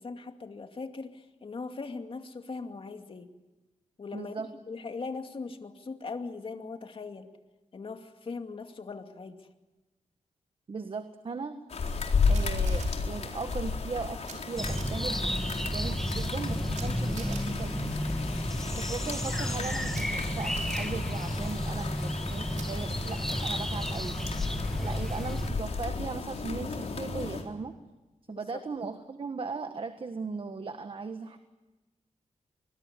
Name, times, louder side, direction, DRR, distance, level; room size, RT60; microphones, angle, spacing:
voice 1, 0.0-3.3 4.0-4.4 4.7-7.3 7.7-9.5 24.8-25.0 28.3-28.6, left 4 dB, 45° left, 5 dB, 2.4 m, -40 dB
voice 2, 4.1-4.5 10.7-11.6 12.3-15.3 15.7-17.9 18.7-24.2 24.8-27.7 28.3-31.4, right 4 dB, 45° right, 8 dB, 1.5 m, -38 dB
sound 1, 11.7-27.4, left 4 dB, 60° left, 4.2 m, -34 dB
Camera, 12.3-12.9 14.2-14.3 14.6-14.8 16.7-16.9 17.2-17.4 19.9-20.0 20.6-20.8 22.5-22.7 23.3-23.6, right 6 dB, 85° right, 5.6 m, -44 dB
sound 2, 14.6-25.5, equal, 5° left, 2.4 m, -32 dB
25.0 x 21.5 x 9.8 m, 1.1 s
wide cardioid pair, 100°, 12 cm